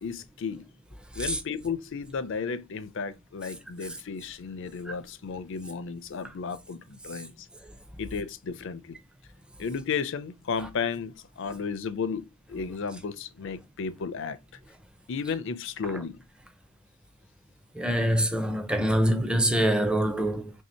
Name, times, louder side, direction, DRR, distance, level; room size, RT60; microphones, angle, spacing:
voice 1, 0.0-0.7 1.1-7.3 8.0-9.0 9.6-14.4 15.1-16.2, left 5 dB, 55° left, 0.4 m, -33 dB
voice 2, 17.7-20.5, right 1 dB, 5° right, 0.4 m, -25 dB
3.2 x 2.8 x 4.3 m
head